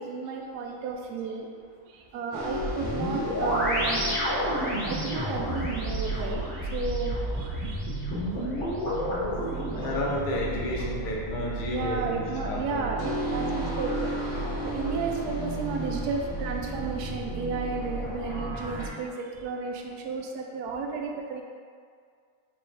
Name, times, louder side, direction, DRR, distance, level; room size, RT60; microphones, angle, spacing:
voice 1, 0.0-1.5 1.9-4.0 4.7-7.9 11.6-21.4, right 4 dB, 85° right, 1 dB, 1.1 m, -33 dB
sound 1, 2.3-18.9, right 1 dB, 50° left, 1.8 m, -31 dB
voice 2, 9.7-12.9, left 1 dB, 70° left, -3 dB, 0.4 m, -31 dB
4.6 x 3.0 x 3.2 m, 2.1 s
omnidirectional pair, 1.6 m